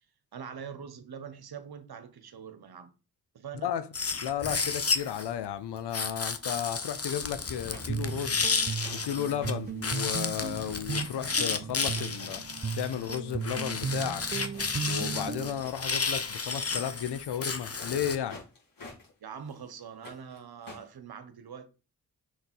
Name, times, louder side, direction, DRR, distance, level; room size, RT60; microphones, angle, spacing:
voice 1, 0.3-2.9 3.3-3.7 19.2-21.7, right 7 dB, 65° right, 1.2 m, -43 dB
sound 1, 3.9-5.3 5.9-9.5 9.8-18.2, left 4 dB, 35° left, 1.1 m, -32 dB
voice 2, 4.2-8.5 8.9-12.4 12.8-14.2 14.9-18.4, left 9 dB, 85° left, 0.8 m, -33 dB
sound 2, 7.2-17.3 17.6-19.1 19.4-20.9, left 3 dB, 55° left, 4.1 m, -53 dB
Guitar, 7.6-15.6, right 6 dB, 25° right, 0.5 m, -36 dB
6.6 x 3.9 x 4.4 m
supercardioid pair, 40°, 40 cm